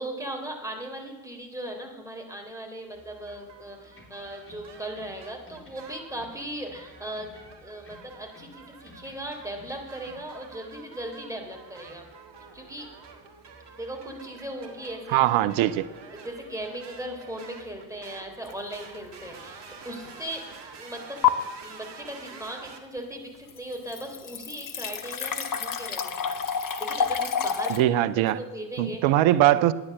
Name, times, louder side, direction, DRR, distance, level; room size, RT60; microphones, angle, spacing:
voice 1, 0.0-7.3 7.6-12.0 12.5-12.9 13.7-15.2 16.1-20.4 20.8-27.9 28.4-29.0, right 1 dB, 5° right, 1 dB, 3.6 m, -38 dB
sound 1, 2.9-22.8, right 5 dB, 55° right, 1.9 m, -48 dB
sound 2, 3.9-5.2 5.5-6.9 7.2-8.6 8.9-10.3, left 2 dB, 25° left, 3.7 m, -54 dB
voice 2, 15.1-15.9 27.7-28.4 28.8-29.7, right 14 dB, 75° right, 15 dB, 0.7 m, -21 dB
sound 3, 18.4-18.7 19.2-19.3 21.2-21.3 23.1-23.2 23.5-27.8, left 8 dB, 40° left, 1.2 m, -28 dB
10.0 x 9.7 x 7.5 m, 1.2 s
hypercardioid pair, 45°, 48 cm